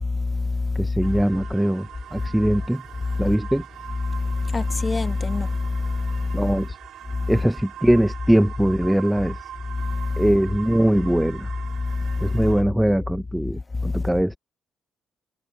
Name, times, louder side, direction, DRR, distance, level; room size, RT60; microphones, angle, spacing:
voice 1, 0.0-1.0 2.2-2.3 3.0-3.3 4.0-6.5 7.1-7.3 9.7-10.2 11.8-12.4 13.7-14.1, left 3 dB, 25° left, 1.3 m, -25 dB
voice 2, 0.8-2.8 3.2-3.6 6.3-6.8 7.3-9.4 10.2-11.5 12.2-14.4, right 1 dB, 5° right, 0.5 m, -21 dB
sound 1, 1.0-12.6, right 10 dB, 75° right, 3.6 m, -42 dB
cardioid pair, 90°, 0 cm